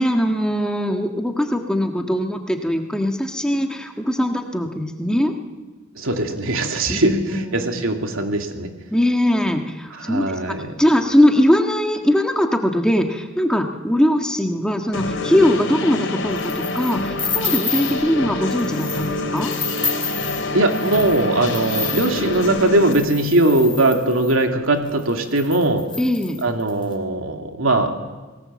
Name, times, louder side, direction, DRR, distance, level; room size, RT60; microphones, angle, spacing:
voice 1, 0.0-5.3 6.9-7.9 8.9-19.5 26.0-26.4, left 1 dB, 5° left, 4 dB, 1.6 m, -21 dB
voice 2, 6.0-8.7 9.9-10.7 20.5-25.8 26.4-27.9, right 2 dB, 85° right, 4 dB, 2.7 m, -20 dB
sound 1, 14.9-22.9, left 2 dB, 65° left, 3.7 m, -26 dB
sound 2, 16.4-18.1 18.5-19.1 19.4-24.4 25.0-25.1 25.3-26.8, left 5 dB, 25° left, 3.6 m, -29 dB
28.5 x 19.0 x 7.6 m, 1.3 s
head